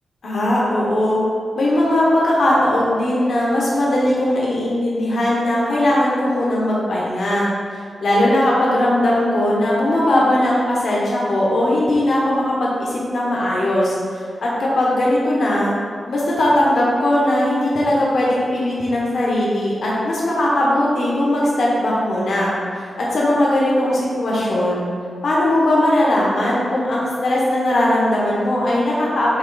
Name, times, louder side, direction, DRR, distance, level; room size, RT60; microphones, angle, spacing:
voice 1, 0.2-1.2 1.6-15.7 16.1-24.8 25.2-29.4, left 1 dB, 65° left, -6 dB, 1.4 m, -19 dB
8.3 x 3.2 x 4.1 m, 2.1 s
wide cardioid pair, 165°, 0 cm